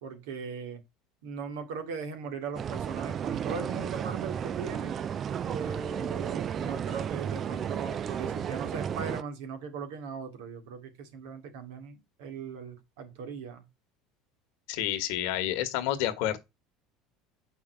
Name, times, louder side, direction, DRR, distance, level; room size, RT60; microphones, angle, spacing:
voice 1, 0.0-0.8 1.2-5.0 5.5-13.7, right 5 dB, 85° right, 2.4 m, -39 dB
sound 1, 2.6-9.2, right 8 dB, 40° right, 0.5 m, -33 dB
voice 2, 14.7-16.4, left 12 dB, 75° left, 1.6 m, -29 dB
7.3 x 5.7 x 4.7 m
supercardioid pair, 105°, 0 cm